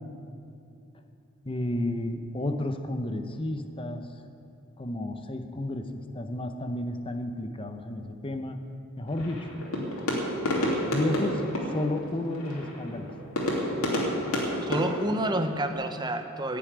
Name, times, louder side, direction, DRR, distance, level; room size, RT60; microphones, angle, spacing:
voice 1, 1.4-4.1 4.8-8.6 9.0-9.5 10.9-11.4 11.7-13.1, left 1 dB, 25° left, 7 dB, 0.8 m, -32 dB
sound 1, 9.1-15.7, equal, 85° left, 2.9 m, -31 dB
voice 2, 14.6-16.6, right 1 dB, 20° right, 7 dB, 0.9 m, -29 dB
15.5 x 7.1 x 9.5 m, 2.7 s
head